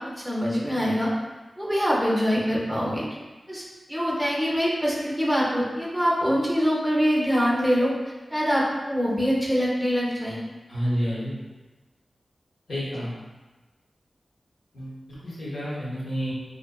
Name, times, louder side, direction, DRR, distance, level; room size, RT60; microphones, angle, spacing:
voice 1, 0.2-1.1 1.6-3.0 3.5-3.6 3.9-7.9 8.3-10.4, equal, ahead, -5 dB, 0.6 m, -24 dB
voice 2, 10.7-11.3 12.7-13.1 14.7-15.0 15.2-16.3, equal, 85° left, -8 dB, 1.0 m, -29 dB
2.6 x 2.2 x 2.3 m, 1.2 s
cardioid pair, 55°, 0 cm